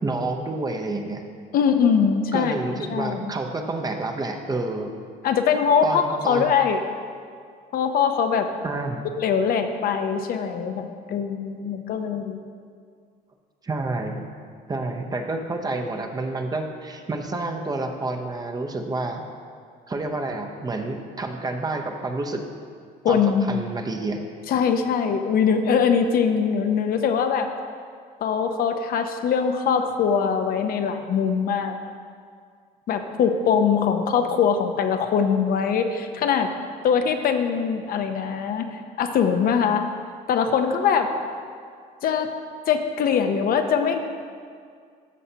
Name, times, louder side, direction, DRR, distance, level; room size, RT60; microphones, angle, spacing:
voice 1, 0.0-1.2 2.3-5.0 5.8-6.5 8.6-9.1 13.6-14.3 14.7-19.2 19.9-22.4 23.1-24.2, right 2 dB, 25° right, 4 dB, 0.7 m, -29 dB
voice 2, 1.5-2.5 2.9-3.2 5.2-6.8 7.7-8.5 9.2-12.4 23.0-23.6 24.5-27.5 28.2-31.7 32.9-36.5 36.8-39.9 40.3-41.1 42.0-42.3 42.7-44.1, left 6 dB, 60° left, 6 dB, 0.6 m, -22 dB
13.5 x 5.5 x 2.8 m, 2.1 s
cardioid pair, 110°, 17 cm